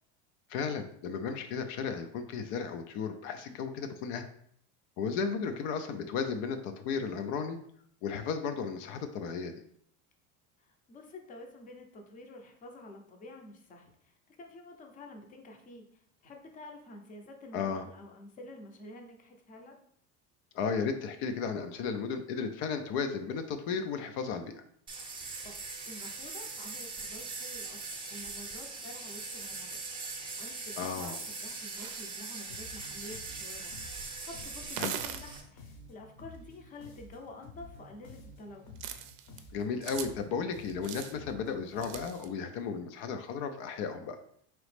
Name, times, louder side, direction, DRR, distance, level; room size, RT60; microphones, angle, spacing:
voice 1, 0.5-4.3 5.0-7.6 8.0-9.5 17.5-17.8 20.5-24.6 30.8-31.2 34.8-34.9 39.5-44.2, left 5 dB, 70° left, 8 dB, 0.5 m, -34 dB
voice 2, 10.6-19.8 25.2-38.7, left 2 dB, 25° left, 3 dB, 0.6 m, -49 dB
sound 1, 24.9-35.4, right 3 dB, 15° right, 0.6 m, -41 dB
sound 2, 31.8-32.0 33.6-33.7 34.6-35.2 37.4-37.5 38.8-39.4 39.8-40.1 40.7-41.1 41.8-42.3, right 9 dB, 65° right, 0.5 m, -39 dB
sound 3, 32.5-42.3, left 2 dB, 50° left, 0.8 m, -51 dB
4.0 x 3.0 x 3.2 m, 0.66 s
cardioid pair, 140°, 34 cm